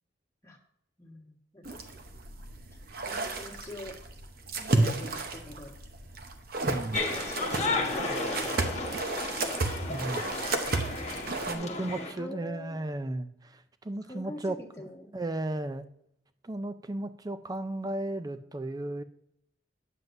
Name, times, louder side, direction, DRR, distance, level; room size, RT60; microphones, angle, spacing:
voice 1, 1.0-1.8 3.0-4.0 4.5-5.7 7.1-8.4 9.8-10.9 11.4-12.9 14.0-15.1, left 1 dB, 15° left, -3 dB, 1.6 m, -45 dB
sound 1, 1.6-11.5, right 2 dB, 55° right, 0.9 m, -32 dB
voice 2, 6.6-7.1 9.9-10.3 11.5-14.6 15.1-15.9 16.4-19.0, right 1 dB, 20° right, 10 dB, 0.4 m, -35 dB
sound 2, 6.9-12.1, left 3 dB, 35° left, 1.2 m, -33 dB
9.2 x 7.8 x 2.6 m, 0.74 s
head